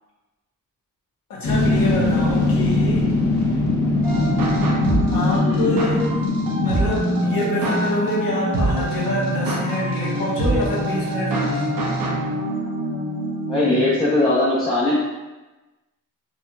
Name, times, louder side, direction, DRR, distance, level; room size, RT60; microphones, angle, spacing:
voice 1, 1.3-3.0 5.1-6.1 6.6-11.8, left 1 dB, 85° left, -5 dB, 1.1 m, -26 dB
sound 1, 1.4-10.0 10.3-10.4, left 2 dB, 60° left, 0.8 m, -23 dB
sound 2, 4.0-13.9, right 1 dB, 80° right, 0.9 m, -24 dB
voice 2, 5.3-5.7 13.4-15.0, left 2 dB, 15° left, -9 dB, 0.6 m, -20 dB
4.4 x 2.9 x 2.3 m, 1.1 s
wide cardioid pair, 160°, 33 cm